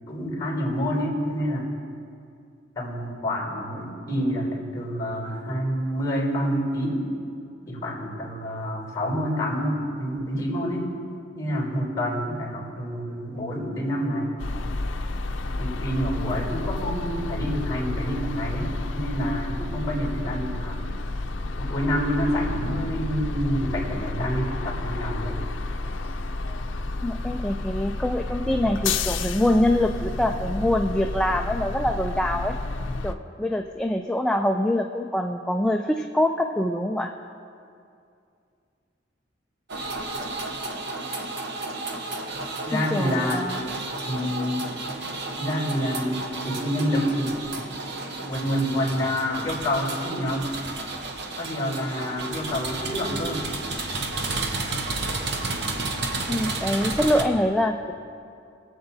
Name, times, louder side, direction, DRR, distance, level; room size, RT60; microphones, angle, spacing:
voice 1, 0.1-1.7 2.7-7.1 7.7-10.9 11.4-14.4 15.6-20.8 21.5-25.4 42.6-43.5 44.0-44.7 45.4-47.7 48.3-50.5 51.4-53.5, equal, 20° left, -2 dB, 3.0 m, -28 dB
sound 1, 14.4-33.1, left 2 dB, 85° left, 0.5 m, -30 dB
voice 2, 27.0-32.5 33.0-37.1 42.7-43.6 56.3-57.9, left 1 dB, 5° left, 3 dB, 0.3 m, -24 dB
sound 2, 39.7-57.2, right 2 dB, 60° right, 0.9 m, -32 dB
23.0 x 7.9 x 2.7 m, 2.5 s
head